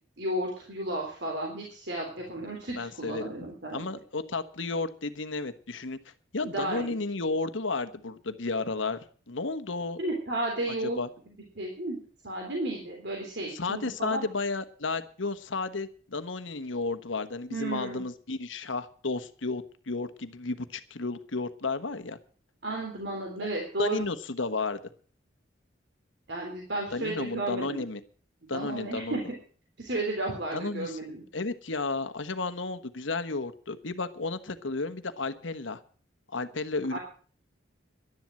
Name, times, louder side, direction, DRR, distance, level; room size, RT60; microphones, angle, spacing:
voice 1, 0.2-3.8 6.5-6.9 10.0-11.0 11.6-12.0 12.2-14.2 17.5-18.0 22.6-24.1 26.3-27.8 28.5-29.2 29.8-31.2 36.9-37.0, right 2 dB, 60° right, 0 dB, 3.6 m, -33 dB
voice 2, 2.7-3.3 3.7-6.0 6.3-9.0 9.3-10.0 10.7-11.1 13.5-22.2 23.4-23.5 23.8-24.8 26.9-28.0 28.5-29.2 30.5-31.0 31.3-35.8 36.3-37.0, left 3 dB, 85° left, 10 dB, 1.3 m, -32 dB
12.0 x 10.5 x 7.7 m, 0.43 s
head